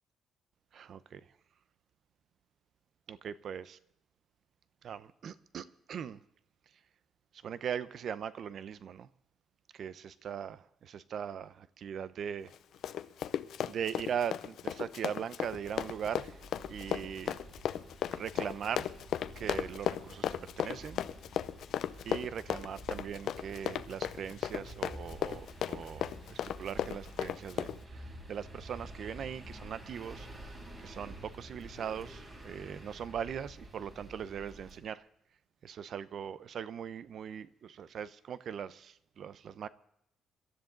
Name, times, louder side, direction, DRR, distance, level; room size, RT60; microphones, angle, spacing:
voice 1, 0.7-1.2 3.1-3.8 4.8-6.2 7.4-9.1 9.7-12.5 13.6-16.4 16.7-17.4 18.1-18.9 19.4-21.0 22.0-30.3 30.8-35.0 35.6-39.7, right 8 dB, 45° right, 0.7 m, -40 dB
Run, 12.5-27.8, left 10 dB, 60° left, 0.7 m, -35 dB
sound 1, 15.5-34.8, right 1 dB, 25° right, 4.0 m, -50 dB
25.5 x 13.0 x 3.9 m
cardioid pair, 175°, 0 cm